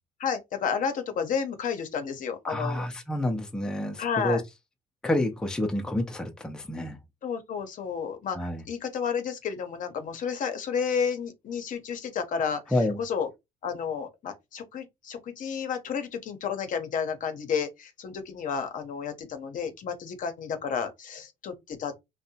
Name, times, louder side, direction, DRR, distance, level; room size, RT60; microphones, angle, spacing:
voice 1, 0.2-2.9 4.0-4.4 7.2-12.6 13.0-13.3 13.6-21.9, left 6 dB, 50° left, 0.7 m, -31 dB
voice 2, 2.4-4.4 5.0-7.0 8.3-8.6 12.7-13.0, left 1 dB, 5° left, 0.5 m, -28 dB
2.7 x 2.0 x 2.7 m
cardioid pair, 110°, 17 cm